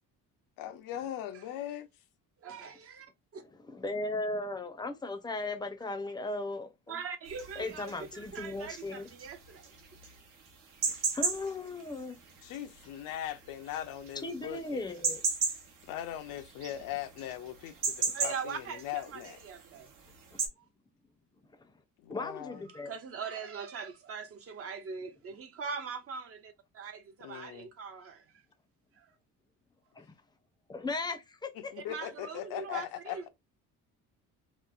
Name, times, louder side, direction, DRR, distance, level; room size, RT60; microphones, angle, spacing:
voice 1, 0.6-1.9 12.4-15.0 15.5-15.6 15.9-19.4 22.0-22.6 27.2-27.7 31.5-33.3, left 11 dB, 85° left, 0.5 m, -40 dB
voice 2, 2.4-3.1 3.3-3.4 6.9-9.6 18.1-19.9 22.7-28.2 29.0-29.1 31.8-33.3, right 6 dB, 45° right, 0.6 m, -41 dB
voice 3, 3.5-7.0 7.6-9.1 11.1-12.2 14.2-15.2 21.6-21.7 22.1-22.9 30.0-30.1 30.7-31.7, left 2 dB, 15° left, 0.5 m, -37 dB
sound 1, 7.3-20.5, right 5 dB, 80° right, 0.9 m, -36 dB
2.9 x 2.0 x 2.3 m
cardioid pair, 110°, 32 cm